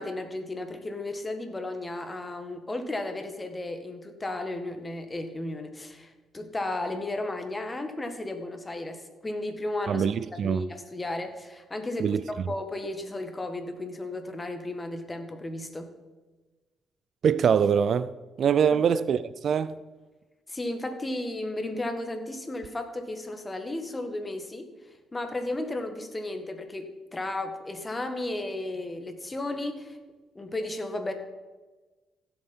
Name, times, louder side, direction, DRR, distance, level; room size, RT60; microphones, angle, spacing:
voice 1, 0.0-10.0 10.4-15.9 18.7-18.8 20.5-24.7 25.1-30.0 30.3-31.1, left 2 dB, 20° left, 1.6 m, -34 dB
voice 2, 9.9-10.7 12.0-12.2 17.2-18.1 18.4-19.8, right 7 dB, 60° right, 0.4 m, -23 dB
16.0 x 7.1 x 4.4 m
cardioid pair, 90°, 0 cm